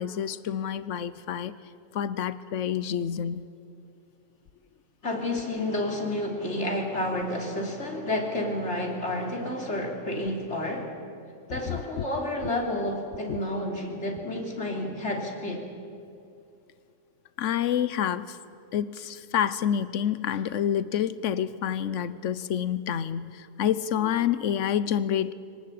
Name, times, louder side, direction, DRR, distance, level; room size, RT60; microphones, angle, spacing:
voice 1, 0.0-1.5 1.9-3.5 11.5-12.0 13.3-13.4 17.4-18.4 18.7-25.3, left 9 dB, 85° left, 16 dB, 1.1 m, -28 dB
voice 2, 5.0-10.9 11.5-15.7, left 1 dB, 65° left, 1 dB, 3.6 m, -30 dB
24.5 x 18.5 x 8.7 m, 2.6 s
omnidirectional pair, 1.2 m